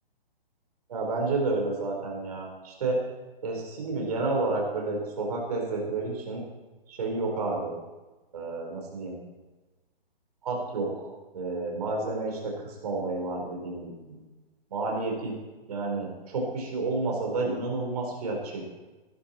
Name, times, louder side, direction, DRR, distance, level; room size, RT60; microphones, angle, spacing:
voice 1, 0.9-3.0 3.4-6.4 6.9-7.7 8.3-9.2 10.4-14.2 14.7-15.4 15.7-18.6, right 3 dB, 40° right, 0 dB, 4.4 m, -30 dB
17.5 x 11.0 x 4.5 m, 1.2 s
hypercardioid pair, 170°, 30 cm